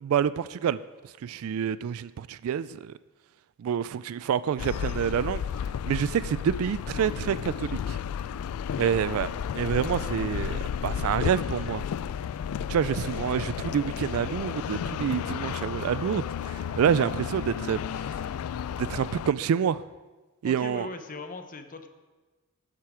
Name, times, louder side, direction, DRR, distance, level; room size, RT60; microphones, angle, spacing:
voice 1, 0.0-0.8 1.2-2.9 3.6-5.4 5.9-8.0 8.8-9.3 9.5-11.8 12.7-17.8 18.8-19.8 20.4-20.9, right 8 dB, 70° right, 17 dB, 0.3 m, -27 dB
sound 1, 4.6-19.3, left 8 dB, 75° left, 0.3 m, -33 dB
voice 2, 8.7-9.0 16.7-16.9 20.4-21.9, left 3 dB, 40° left, 8 dB, 0.8 m, -40 dB
12.0 x 7.5 x 4.9 m, 1.2 s
head